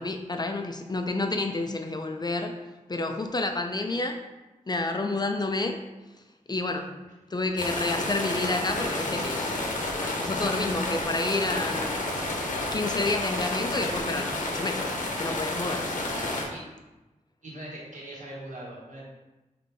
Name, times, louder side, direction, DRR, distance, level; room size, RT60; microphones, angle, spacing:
voice 1, 0.0-2.6 2.9-4.2 4.7-5.9 6.5-6.9 7.3-9.6 9.9-12.0 12.7-15.9, left 2 dB, 30° left, 5 dB, 0.3 m, -29 dB
sound 1, 7.6-16.4, left 2 dB, 80° left, 0.8 m, -30 dB
voice 2, 11.5-12.3 16.5-16.6 17.4-19.0, right 1 dB, 65° right, -5 dB, 1.4 m, -43 dB
4.1 x 3.2 x 3.3 m, 1.1 s
wide cardioid pair, 100°, 13 cm